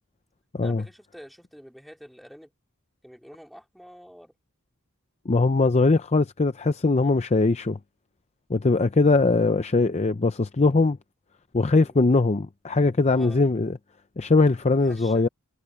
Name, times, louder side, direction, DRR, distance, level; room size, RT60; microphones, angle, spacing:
voice 1, 0.6-2.5 3.0-4.3 7.0-7.2 11.7-12.0 13.1-13.4 14.8-15.3, equal, ahead, 3.4 m, -47 dB
voice 2, 5.3-7.8 8.5-11.0 11.5-13.8 14.2-15.3, left 3 dB, 30° left, 0.6 m, -21 dB
head